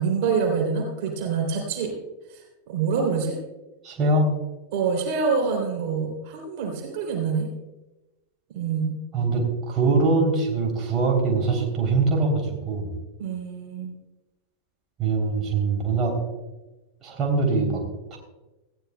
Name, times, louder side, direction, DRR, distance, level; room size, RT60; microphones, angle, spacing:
voice 1, 0.0-1.9 2.3-3.4 4.7-7.5 8.5-9.0 13.2-13.9, right 5 dB, 45° right, 1 dB, 3.2 m, -26 dB
voice 2, 3.8-4.3 9.1-12.9 15.0-16.1 17.0-17.8 18.1-18.2, right 3 dB, 30° right, 0 dB, 3.2 m, -23 dB
19.0 x 15.5 x 2.3 m, 1.0 s
figure-of-eight pair, 90°, 0 cm